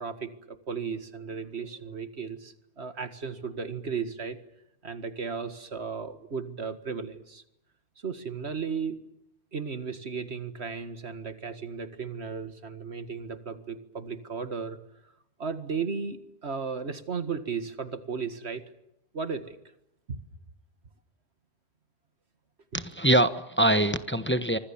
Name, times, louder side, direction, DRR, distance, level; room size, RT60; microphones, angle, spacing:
voice 1, 0.0-4.4 4.8-7.4 8.0-9.0 9.5-14.8 15.4-18.6 19.1-19.6 20.1-20.2 22.7-22.8, right 5 dB, 75° right, 10 dB, 2.1 m, -35 dB
voice 2, 22.7-24.6, right 1 dB, 10° left, 10 dB, 1.1 m, -23 dB
26.0 x 25.5 x 7.3 m, 0.81 s
omnidirectional pair, 1.1 m